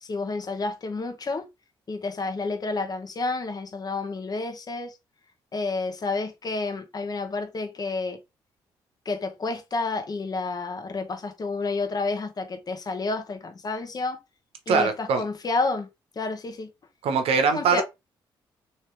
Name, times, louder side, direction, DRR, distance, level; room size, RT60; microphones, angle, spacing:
voice 1, 0.0-1.5 1.9-5.0 5.5-8.2 9.0-14.2 14.7-15.9 16.1-16.7 17.5-17.8, left 3 dB, 40° left, 1.1 m, -30 dB
voice 2, 14.7-15.2 17.0-17.8, right 5 dB, 75° right, 1.0 m, -22 dB
3.3 x 3.2 x 4.5 m
supercardioid pair, 60°, 10 cm